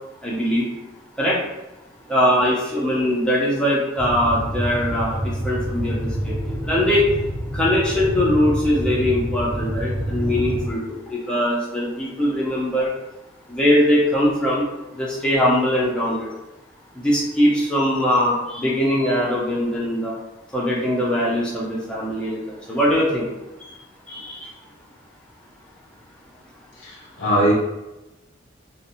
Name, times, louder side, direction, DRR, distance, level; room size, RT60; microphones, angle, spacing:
voice 1, 0.2-0.7 1.2-1.4 2.1-7.1 7.5-12.9 13.5-14.7 14.9-16.3 16.9-20.2 20.5-23.3 23.6-23.7 24.1-24.5, equal, 5° left, -6 dB, 0.5 m, -21 dB
sound 1, 4.0-10.7, equal, 45° right, 0.7 m, -27 dB
voice 2, 26.8-27.5, right 1 dB, 50° left, -5 dB, 0.6 m, -20 dB
2.5 x 2.0 x 2.8 m, 0.99 s
head